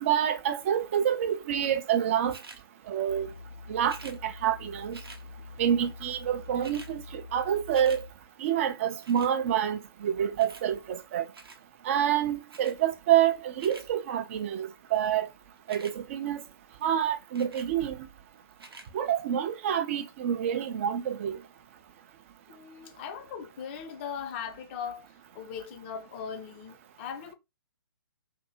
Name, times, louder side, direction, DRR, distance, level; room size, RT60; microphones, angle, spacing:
voice 1, 0.0-2.4 2.9-3.3 3.7-5.0 5.6-8.0 8.4-11.3 11.8-15.3 15.7-16.4 16.8-18.1 18.9-21.4, right 9 dB, 35° right, 0.4 m, -27 dB
sound 1, 2.3-2.6 3.8-4.2 4.9-5.2 6.2-6.3 6.4-6.9 7.3-8.0 9.0-9.3 10.4-10.7 11.3-11.6 12.5-12.8 13.4-13.9 15.6-16.0 17.3-17.7 18.5-18.9 19.5-19.6, right 3 dB, 75° right, 0.7 m, -48 dB
sound 2, 3.1-8.1, left 3 dB, 85° left, 0.5 m, -46 dB
voice 2, 22.5-25.1 25.3-27.3, left 7 dB, 30° left, 0.4 m, -39 dB
2.6 x 2.6 x 2.6 m
figure-of-eight pair, 130°, 13 cm